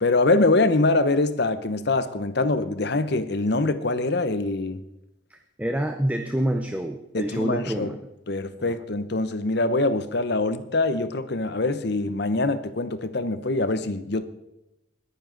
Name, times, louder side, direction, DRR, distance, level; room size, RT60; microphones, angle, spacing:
voice 1, 0.0-4.8 7.1-7.9 8.3-14.2, left 2 dB, 55° left, 0.9 m, -24 dB
voice 2, 5.3-8.0, right 1 dB, 5° right, 0.6 m, -27 dB
20.5 x 9.6 x 3.9 m
head